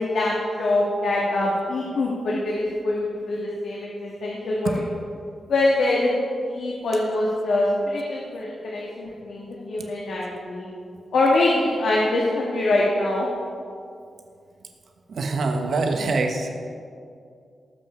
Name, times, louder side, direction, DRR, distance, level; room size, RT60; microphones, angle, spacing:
voice 1, 0.0-4.8 5.5-6.1 6.5-10.7 11.1-13.3, left 2 dB, 75° left, -4 dB, 1.8 m, -24 dB
voice 2, 15.1-16.5, right 3 dB, 65° right, 3 dB, 1.1 m, -24 dB
18.0 x 7.8 x 4.4 m, 2.4 s
wide cardioid pair, 135°, 0 cm